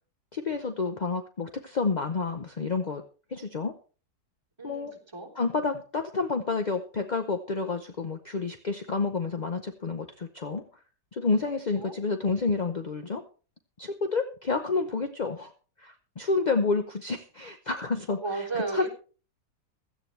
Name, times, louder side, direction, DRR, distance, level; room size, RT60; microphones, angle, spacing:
voice 1, 0.3-3.0 3.3-3.7 4.6-4.9 5.4-10.6 11.1-13.2 13.8-15.5 15.8-18.2 18.7-18.9, left 4 dB, 40° left, 6 dB, 0.6 m, -29 dB
voice 2, 4.6-5.3 11.8-12.0 18.1-18.9, right 3 dB, 15° right, -2 dB, 3.5 m, -34 dB
16.5 x 13.5 x 3.2 m, 0.38 s
omnidirectional pair, 1.9 m